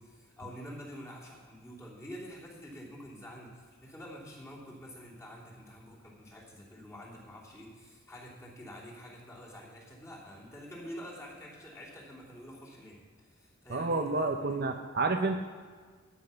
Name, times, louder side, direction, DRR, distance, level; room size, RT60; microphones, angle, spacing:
voice 1, 0.0-14.8, equal, 15° left, -6 dB, 3.1 m, -47 dB
voice 2, 13.7-15.4, right 3 dB, 45° right, 5 dB, 0.7 m, -29 dB
13.0 x 10.0 x 5.7 m, 1.5 s
head